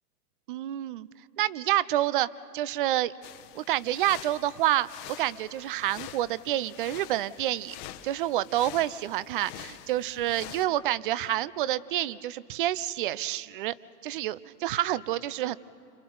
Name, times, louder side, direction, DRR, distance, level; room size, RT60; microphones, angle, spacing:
voice 1, 0.5-1.1 1.4-3.1 3.5-7.7 8.0-13.7 14.0-15.6, right 13 dB, 35° right, 19 dB, 0.4 m, -28 dB
sound 1, 3.2-10.7, left 13 dB, 35° left, 1.0 m, -46 dB
29.0 x 27.0 x 3.9 m, 2.4 s
hypercardioid pair, 120°, 49 cm